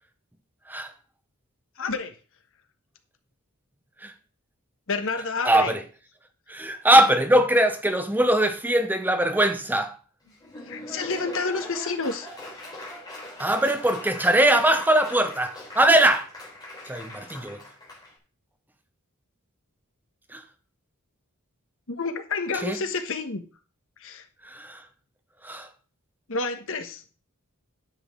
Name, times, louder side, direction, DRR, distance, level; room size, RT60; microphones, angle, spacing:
voice 1, 1.8-2.1 4.9-5.7 10.7-12.3 21.9-23.4 24.0-24.2 26.3-27.0, left 4 dB, 65° left, 1.3 m, -29 dB
voice 2, 5.4-5.8 6.5-10.0 13.4-16.3 16.9-17.6 20.3-20.4 22.5-22.8 24.4-24.8 25.4-25.7, right 1 dB, 10° right, 0.8 m, -21 dB
Laughter / Applause, 10.2-18.1, left 1 dB, 20° left, 3.5 m, -41 dB
10.5 x 7.8 x 3.8 m
head